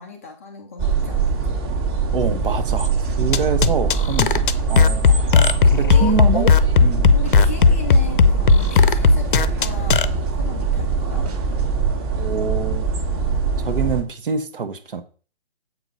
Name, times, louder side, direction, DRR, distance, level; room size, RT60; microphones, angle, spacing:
voice 1, 0.0-1.6 5.8-6.3 7.1-11.3, left 6 dB, 15° left, 0.5 m, -36 dB
sound 1, 0.8-14.0, right 5 dB, 20° right, 1.4 m, -22 dB
voice 2, 2.1-7.1 12.2-12.8 13.6-15.0, right 5 dB, 55° right, 1.3 m, -25 dB
sound 2, 3.3-10.0, left 5 dB, 55° left, 0.7 m, -15 dB
sound 3, 6.6-11.9, right 4 dB, 40° right, 1.4 m, -42 dB
7.8 x 4.9 x 5.4 m
hypercardioid pair, 150°, 32 cm